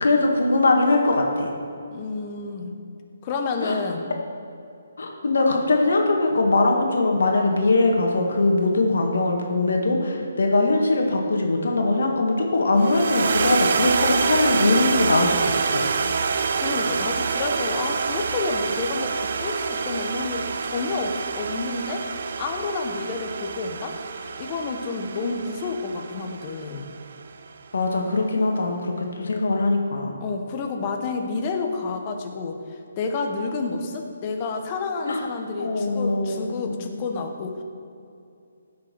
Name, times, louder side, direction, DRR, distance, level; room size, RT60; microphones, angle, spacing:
voice 1, 0.0-1.5 3.6-3.8 5.0-16.0 27.7-30.1 35.1-35.2 35.6-36.9, left 2 dB, 75° left, 1 dB, 1.8 m, -21 dB
voice 2, 1.9-2.7 3.2-4.1 16.5-22.1 22.4-24.0 24.4-26.9 30.2-32.6 33.0-37.6, left 4 dB, 25° left, 3 dB, 1.0 m, -29 dB
sound 1, 12.8-27.2, right 5 dB, 50° right, 0.6 m, -27 dB
17.0 x 6.5 x 4.5 m, 2.6 s
hypercardioid pair, 170°, 0 cm